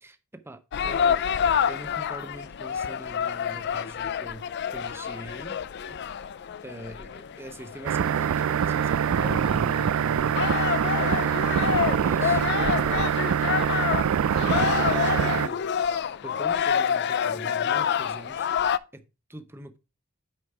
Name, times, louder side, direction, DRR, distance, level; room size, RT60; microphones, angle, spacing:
voice 1, 0.0-1.2 1.7-5.6 6.6-10.5 11.2-12.4 12.7-14.0 14.3-16.0 16.2-18.5 18.9-19.8, right 1 dB, 10° right, 0.7 m, -42 dB
sound 1, 0.7-18.8, left 7 dB, 50° left, 0.4 m, -28 dB
sound 2, 7.9-15.5, right 8 dB, 70° right, 0.3 m, -24 dB
8.8 x 5.2 x 4.6 m
head